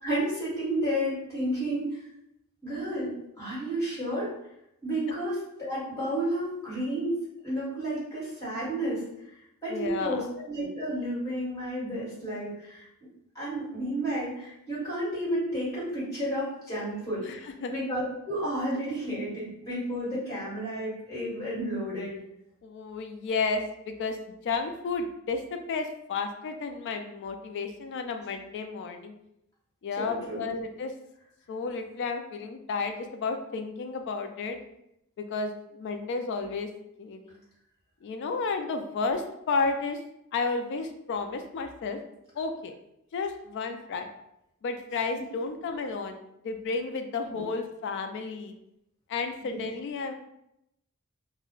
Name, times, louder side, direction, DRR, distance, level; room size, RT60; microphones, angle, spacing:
voice 1, 0.0-2.0 2.6-4.3 4.8-7.2 7.4-9.0 9.6-12.9 13.3-22.2 30.0-30.4 47.3-47.4 49.4-49.7, right 1 dB, 15° left, -10 dB, 1.5 m, -31 dB
voice 2, 9.7-10.2 17.2-17.7 22.6-29.1 29.8-30.9 31.5-34.6 35.2-36.7 37.0-37.4 38.0-40.0 40.3-42.0 42.4-42.7 43.1-44.1 44.6-46.2 46.4-48.5 49.1-50.1, left 4 dB, 55° left, 7 dB, 0.3 m, -32 dB
2.3 x 2.1 x 3.6 m, 0.82 s
head